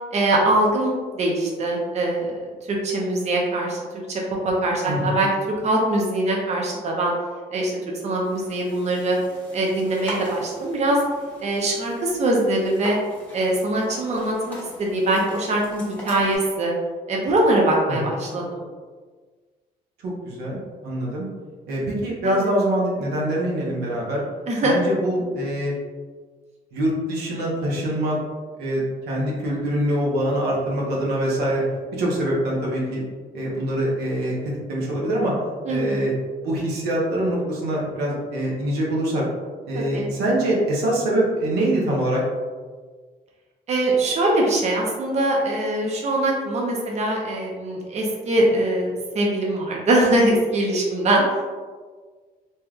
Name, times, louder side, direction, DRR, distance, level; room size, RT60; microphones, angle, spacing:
voice 1, 0.1-2.4 2.7-5.3 5.6-7.1 7.5-7.8 8.0-9.2 9.5-11.0 11.4-13.0 13.3-16.7 17.1-18.6 22.2-22.5 24.5-24.7 35.7-36.1 39.7-40.1 43.7-51.4, right 1 dB, 45° right, -2 dB, 0.7 m, -22 dB
voice 2, 4.9-5.2 17.9-18.1 20.0-21.3 21.7-24.2 24.6-25.7 26.7-28.2 28.6-31.6 31.9-33.0 33.3-35.3 35.7-36.1 36.4-39.2 39.6-42.2, right 1 dB, 90° right, -4 dB, 0.9 m, -24 dB
sound 1, 8.2-16.4, equal, 10° left, 1.1 m, -41 dB
3.3 x 2.7 x 2.4 m, 1.4 s
cardioid pair, 95°, 16 cm